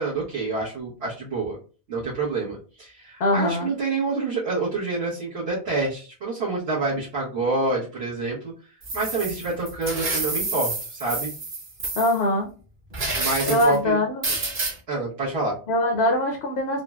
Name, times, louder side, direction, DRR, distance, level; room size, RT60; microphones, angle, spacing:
voice 1, 0.0-1.6 1.9-8.5 8.9-11.3 13.2-14.0 14.9-15.5, right 3 dB, 80° right, -8 dB, 1.2 m, -27 dB
voice 2, 3.2-3.7 12.0-12.5 13.4-14.3 15.7-16.8, left 1 dB, 85° left, 1 dB, 0.9 m, -22 dB
sound 1, 8.8-12.2 12.9-13.8 14.2-14.7, right 3 dB, 50° right, 1.0 m, -29 dB
3.9 x 2.0 x 2.2 m, 0.37 s
omnidirectional pair, 1.0 m